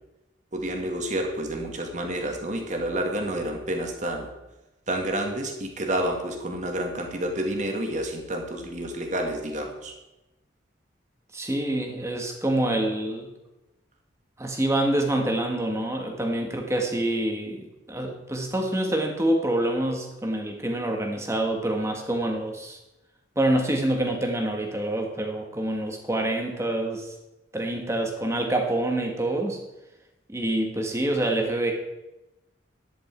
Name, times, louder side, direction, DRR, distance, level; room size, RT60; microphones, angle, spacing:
voice 1, 0.5-4.3 4.9-9.9, right 1 dB, 40° right, 3 dB, 1.9 m, -29 dB
voice 2, 11.3-13.3 14.4-22.8 23.3-27.1 27.5-29.6 30.3-31.7, right 1 dB, 15° right, 2 dB, 1.7 m, -26 dB
12.0 x 10.0 x 4.6 m, 0.98 s
head